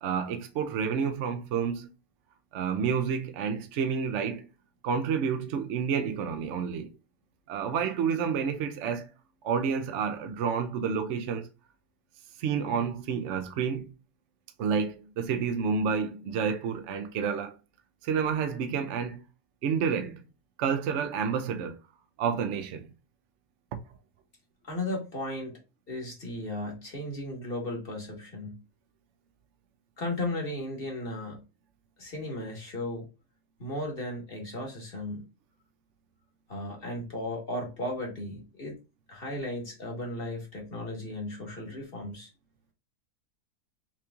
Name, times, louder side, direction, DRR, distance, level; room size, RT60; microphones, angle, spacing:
voice 1, 0.0-1.9 2.5-4.5 4.8-6.9 7.5-9.1 9.4-11.5 12.4-13.9 14.6-17.5 18.0-19.2 19.6-20.3 20.6-21.8 22.2-22.9, right 6 dB, 65° right, 0.7 m, -29 dB
voice 2, 24.7-25.6 25.9-28.6 30.0-31.4 32.0-33.1 33.6-35.3 36.5-38.8 39.1-42.3, left 1 dB, 40° left, 1.4 m, -35 dB
5.9 x 3.0 x 2.3 m
omnidirectional pair, 1.7 m